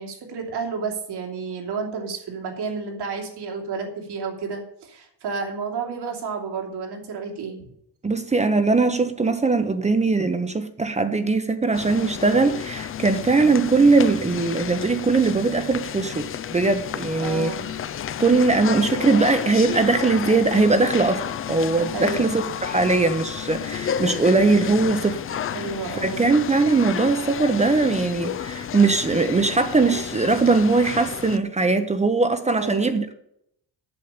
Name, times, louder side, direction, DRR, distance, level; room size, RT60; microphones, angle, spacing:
voice 1, 0.0-7.6 17.2-17.7 21.9-22.3 24.6-24.8 25.5-26.2 32.6-33.0, right 5 dB, 80° right, 3.1 m, -31 dB
voice 2, 8.0-17.5 18.2-21.2 21.5-25.2 26.0-33.1, right 3 dB, 15° right, 0.7 m, -20 dB
sound 1, 11.7-31.4, left 9 dB, 35° left, 0.4 m, -31 dB
8.7 x 7.4 x 8.9 m
cardioid pair, 155°, 39 cm